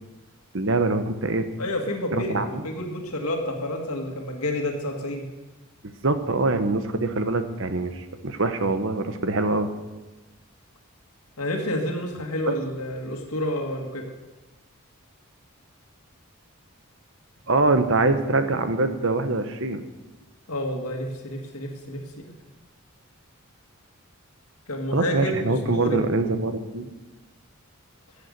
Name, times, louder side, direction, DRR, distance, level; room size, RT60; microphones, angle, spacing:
voice 1, 0.5-1.5 2.1-2.7 6.0-9.7 17.5-19.8 24.9-26.9, right 2 dB, 60° right, 9 dB, 1.1 m, -24 dB
voice 2, 1.6-5.2 11.4-14.0 20.5-22.0 24.7-26.0, left 1 dB, 85° left, 1 dB, 2.1 m, -29 dB
13.5 x 8.5 x 6.7 m, 1.2 s
head